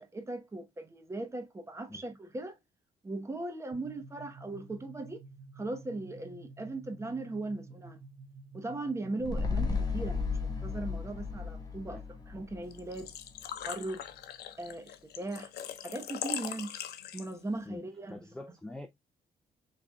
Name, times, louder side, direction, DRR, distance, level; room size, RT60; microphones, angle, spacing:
voice 1, 0.0-2.6 3.0-5.2 5.5-8.0 8.5-10.3 10.6-13.1 13.7-14.1 14.6-15.5 15.8-16.8 17.1-18.2, right 2 dB, 15° right, 0.9 m, -38 dB
sound 1, 3.7-11.3, right 3 dB, 50° right, 2.0 m, -51 dB
sound 2, 9.2-13.7 14.1-14.2, left 4 dB, 25° left, 1.1 m, -35 dB
Engine / Trickle dribble / Fill (with liquid), 12.7-17.6, left 10 dB, 90° left, 0.6 m, -41 dB
voice 2, 17.7-18.9, left 1 dB, 5° left, 0.4 m, -45 dB
6.2 x 3.4 x 2.2 m
cardioid pair, 140°, 16 cm